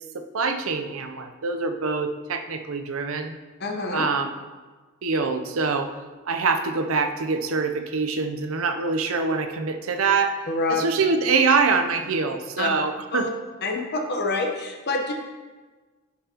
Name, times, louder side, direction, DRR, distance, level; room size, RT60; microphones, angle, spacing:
voice 1, 0.1-3.4 3.9-4.3 5.0-5.9 6.3-10.3 10.7-13.3, right 4 dB, 75° right, 7 dB, 0.6 m, -24 dB
voice 2, 3.6-4.0 10.5-10.8 12.6-12.7 13.1-13.3 13.6-15.1, left 3 dB, 50° left, 2 dB, 1.0 m, -26 dB
10.0 x 5.5 x 2.9 m, 1.3 s
head